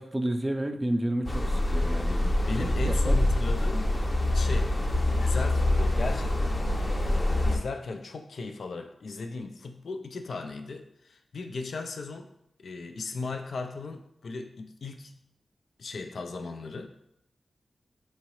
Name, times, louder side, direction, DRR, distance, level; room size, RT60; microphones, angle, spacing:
voice 1, 0.0-2.3 3.1-3.2, right 1 dB, 15° right, 6 dB, 0.4 m, -30 dB
sound 1, 1.2-7.6, left 1 dB, 35° left, 0.6 m, -25 dB
voice 2, 2.4-3.9 4.3-4.8 5.2-6.8 7.4-12.3 12.6-15.2 15.8-16.9, left 3 dB, 75° left, 6 dB, 0.3 m, -37 dB
4.6 x 2.9 x 3.0 m, 0.80 s
wide cardioid pair, 75°, 0 cm